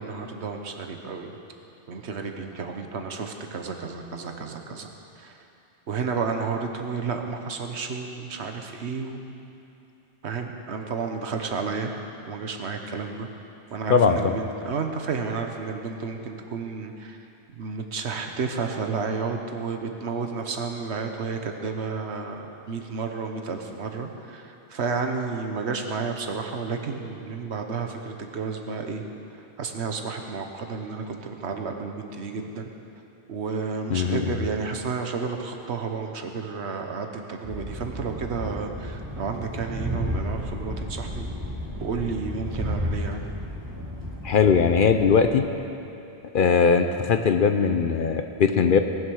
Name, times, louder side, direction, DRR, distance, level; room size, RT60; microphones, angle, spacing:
voice 1, 0.0-1.4 1.9-4.9 5.2-5.4 5.9-9.2 10.2-11.9 12.3-13.3 13.7-17.2 17.5-29.0 29.3-32.7 33.3-41.3 41.8-43.2, right 5 dB, 75° right, 4 dB, 1.3 m, -31 dB
voice 2, 13.9-14.4 33.9-34.2 44.2-45.4 46.3-48.8, left 6 dB, 55° left, 7 dB, 0.7 m, -20 dB
Train, 37.4-45.3, equal, 15° right, 1.9 m, -32 dB
18.5 x 7.2 x 6.3 m, 2.8 s
omnidirectional pair, 1.1 m